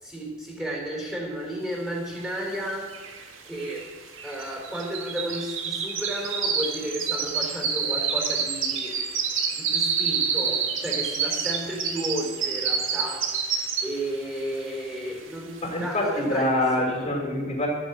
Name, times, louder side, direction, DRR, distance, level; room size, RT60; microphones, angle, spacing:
voice 1, 0.0-2.9 3.5-3.9 4.2-8.9 9.5-13.3 13.5-16.6, right 1 dB, 5° right, -2 dB, 3.9 m, -33 dB
sound 1, 2.4-2.5 2.7-14.1 14.5-14.9 15.3-15.4, right 6 dB, 70° right, 1.7 m, -28 dB
voice 2, 15.6-17.7, left 1 dB, 35° left, -2 dB, 2.7 m, -25 dB
13.0 x 9.0 x 8.2 m, 1.4 s
head